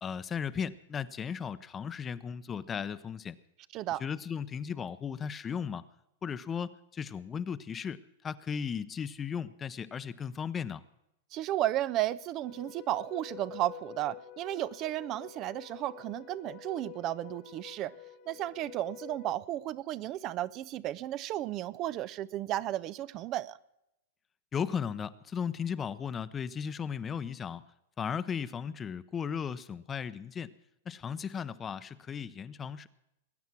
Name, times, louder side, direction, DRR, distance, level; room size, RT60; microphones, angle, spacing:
voice 1, 0.0-3.3 4.0-5.8 6.2-10.8 24.5-27.6 28.0-30.5 30.9-32.9, left 7 dB, 20° left, 0.7 m, -36 dB
voice 2, 11.3-17.9 18.3-23.6, right 13 dB, 40° right, 0.5 m, -34 dB
sound 1, 12.5-19.3, left 12 dB, 50° left, 0.9 m, -49 dB
20.5 x 9.3 x 6.1 m
hypercardioid pair, 115°, 0 cm